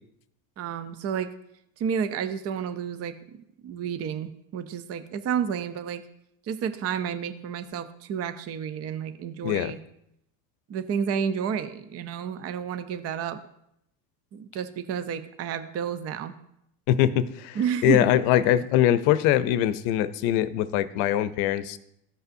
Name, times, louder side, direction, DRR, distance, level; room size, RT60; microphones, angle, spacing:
voice 1, 0.6-1.3 1.8-3.1 3.6-6.0 6.5-9.8 10.7-13.4 14.3-16.3 17.6-18.1, right 7 dB, 30° right, 11 dB, 0.5 m, -30 dB
voice 2, 9.4-9.7 16.9-21.8, left 12 dB, 65° left, 14 dB, 0.7 m, -23 dB
14.5 x 5.5 x 2.6 m, 0.77 s
hypercardioid pair, 90°, 50 cm